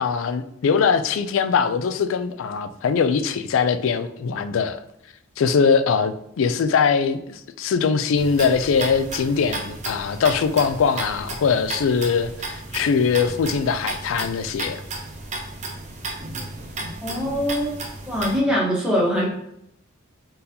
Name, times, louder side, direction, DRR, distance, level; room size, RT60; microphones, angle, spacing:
voice 1, 0.0-4.8 5.4-14.8, left 6 dB, 70° left, 0.3 m, -21 dB
sound 1, 8.2-18.4, right 2 dB, 35° right, 0.6 m, -34 dB
voice 2, 17.0-17.7 18.1-19.3, equal, 5° right, 1.0 m, -22 dB
3.9 x 3.9 x 2.8 m
head